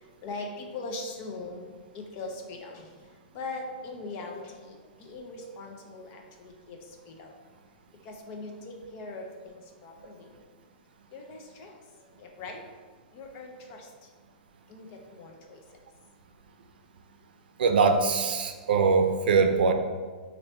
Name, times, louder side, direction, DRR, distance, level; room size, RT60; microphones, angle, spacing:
voice 1, 0.2-1.6 1.9-2.9 3.3-6.8 7.1-7.3 8.0-10.3 11.1-11.7 12.2-12.6 13.1-13.9 14.7-15.6, left 2 dB, 35° left, 2 dB, 0.6 m, -40 dB
voice 2, 17.6-19.7, right 5 dB, 80° right, 5 dB, 0.5 m, -22 dB
3.1 x 2.6 x 4.3 m, 1.5 s
hypercardioid pair, 150°, 5 cm